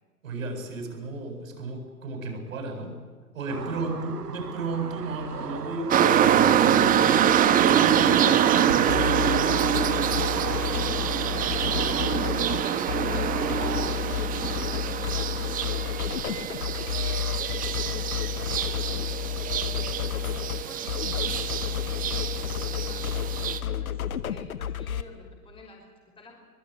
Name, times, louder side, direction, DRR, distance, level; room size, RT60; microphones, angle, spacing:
voice 1, 0.2-3.0 3.3-6.3 6.6-9.6, right 2 dB, 60° right, 4 dB, 8.0 m, -34 dB
voice 2, 3.5-4.0 10.6-12.2 12.6-19.7 20.0-26.4, left 3 dB, 10° left, 1 dB, 5.5 m, -48 dB
sound 1, 3.5-13.9, right 7 dB, 85° right, 0.9 m, -37 dB
sound 2, 5.9-23.6, right 9 dB, 20° right, 1.3 m, -25 dB
sound 3, 8.9-25.0, left 10 dB, 65° left, 1.4 m, -31 dB
24.5 x 22.0 x 9.2 m, 1.4 s
figure-of-eight pair, 110°, 46 cm